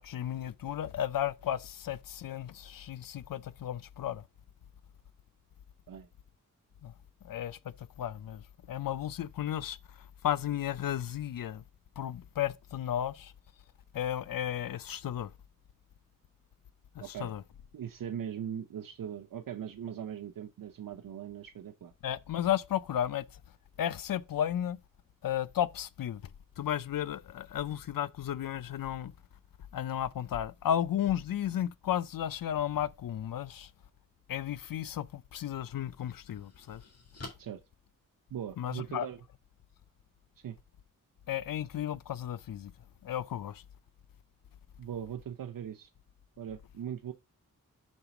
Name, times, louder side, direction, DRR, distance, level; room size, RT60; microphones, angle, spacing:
voice 1, 0.0-4.2 6.8-6.9 7.2-11.6 12.0-13.3 13.9-15.3 16.9-17.4 22.0-23.3 23.8-24.8 25.2-26.2 26.6-29.1 29.7-33.7 34.3-36.8 38.6-39.1 41.3-42.7 43.0-43.6, left 10 dB, 90° left, 0.5 m, -34 dB
voice 2, 17.0-17.3 17.7-21.9 37.4-37.6 38.3-39.2 40.4-40.6 44.8-45.9 46.4-47.1, right 9 dB, 80° right, 0.6 m, -40 dB
sound 1, 35.7-38.7, left 2 dB, 50° left, 1.9 m, -51 dB
5.4 x 3.9 x 5.8 m
wide cardioid pair, 105°, 33 cm